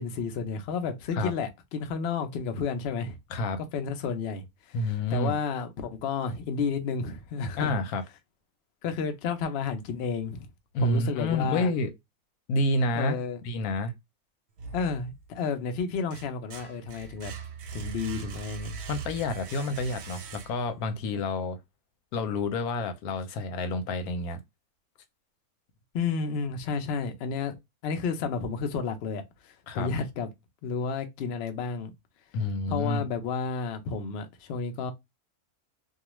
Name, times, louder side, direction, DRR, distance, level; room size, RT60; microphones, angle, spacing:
voice 1, 0.0-3.2 3.6-7.7 8.8-10.5 10.8-11.7 12.9-13.4 14.7-17.3 17.7-18.8 25.9-27.6 27.8-30.3 30.6-31.9 32.7-34.9, left 5 dB, 60° left, 0.7 m, -31 dB
voice 2, 4.7-5.3 7.6-8.0 10.7-11.9 12.5-13.2 13.4-13.9 18.9-21.6 22.1-24.4 29.7-29.9 32.3-33.1, left 2 dB, 90° left, 1.1 m, -28 dB
sound 1, 14.6-15.4 15.8-20.9, right 5 dB, 65° right, 0.7 m, -41 dB
2.4 x 2.3 x 2.9 m
omnidirectional pair, 1.5 m